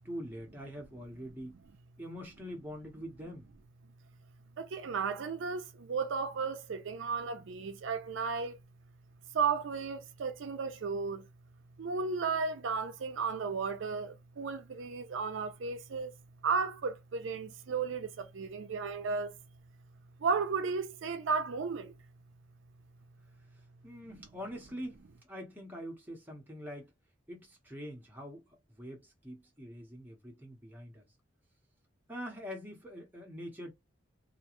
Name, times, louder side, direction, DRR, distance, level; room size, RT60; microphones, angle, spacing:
voice 1, 0.0-1.6 2.0-3.5 23.8-26.9 27.3-31.1 32.1-33.7, equal, 10° right, 0.8 m, -44 dB
voice 2, 4.6-8.6 9.3-11.2 11.8-16.1 16.4-19.4 20.2-21.9, right 5 dB, 70° right, 0.4 m, -34 dB
2.4 x 2.2 x 2.9 m
head